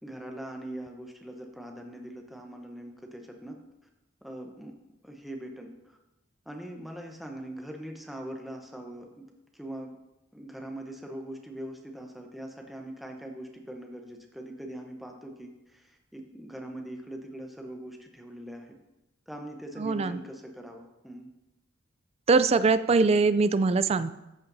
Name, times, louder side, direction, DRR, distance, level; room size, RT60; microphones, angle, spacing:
voice 1, 0.0-3.6 4.2-4.7 5.0-6.0 6.5-9.2 9.5-9.9 10.3-18.8 19.3-21.3, right 1 dB, ahead, 1 dB, 0.8 m, -42 dB
voice 2, 19.8-20.1 22.3-24.1, right 4 dB, 30° right, 14 dB, 0.3 m, -22 dB
13.5 x 8.6 x 2.7 m, 0.96 s
head